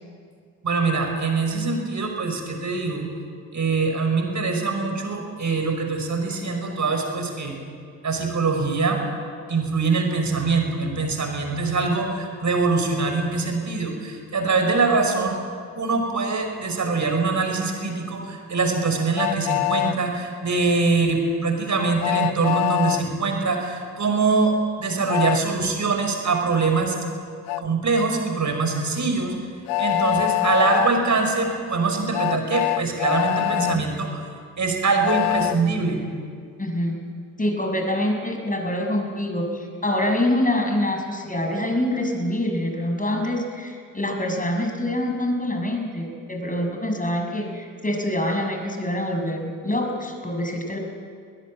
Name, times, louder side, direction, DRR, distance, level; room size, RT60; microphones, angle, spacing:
voice 1, 0.6-3.1 3.5-7.6 8.0-9.0 9.5-15.4 15.8-27.0 27.6-29.3 29.8-34.2 34.6-36.0, right 4 dB, 40° right, 4 dB, 5.4 m, -23 dB
Train, 19.2-20.0 22.0-23.0 25.1-25.4 27.5-27.6 29.7-30.9 32.1-33.8 35.0-35.6, left 21 dB, 60° left, 0.6 m, -24 dB
voice 2, 33.5-33.8 36.6-37.0 37.4-50.8, left 1 dB, 15° left, 3 dB, 6.3 m, -25 dB
22.5 x 20.5 x 8.8 m, 2.2 s
figure-of-eight pair, 40°, 45 cm